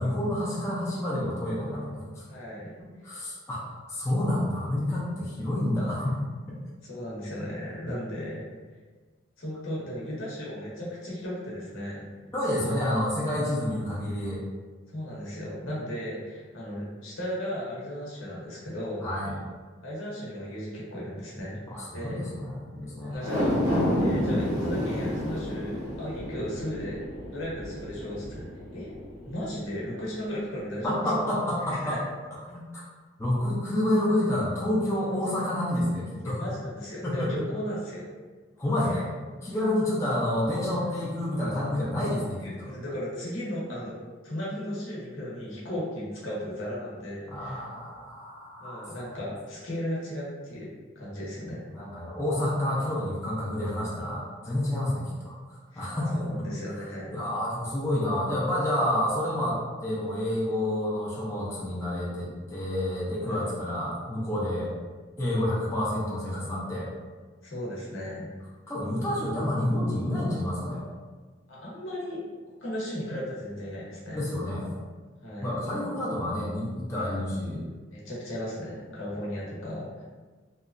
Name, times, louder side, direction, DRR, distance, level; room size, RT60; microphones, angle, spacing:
voice 1, 0.0-2.2 3.0-6.2 12.3-14.4 19.0-19.4 21.7-23.3 30.8-32.0 32.5-32.6 33.2-36.4 37.0-37.3 38.6-39.1 39.4-42.7 47.3-49.0 51.7-55.3 55.7-56.4 57.1-64.7 65.2-66.9 68.7-70.8 74.1-74.7 75.4-77.6, left 1 dB, 15° left, -8 dB, 0.4 m, -29 dB
voice 2, 2.3-2.7 6.8-8.5 9.4-12.1 14.9-19.1 19.8-21.6 21.9-22.2 23.0-23.5 24.0-27.0 27.3-28.5 28.7-28.9 29.2-31.2 31.7-32.0 36.2-38.0 38.8-39.0 42.4-44.0 44.2-47.7 48.6-50.7 50.9-51.6 55.7-57.2 63.2-63.4 67.4-68.3 71.5-72.2 72.6-74.2 75.2-75.5 76.9-77.2 77.9-80.0, equal, 75° left, -6 dB, 0.9 m, -35 dB
sound 1, 23.1-29.7 30.1-30.2, equal, 15° right, 0.8 m, -30 dB
2.8 x 2.2 x 2.4 m, 1.4 s
head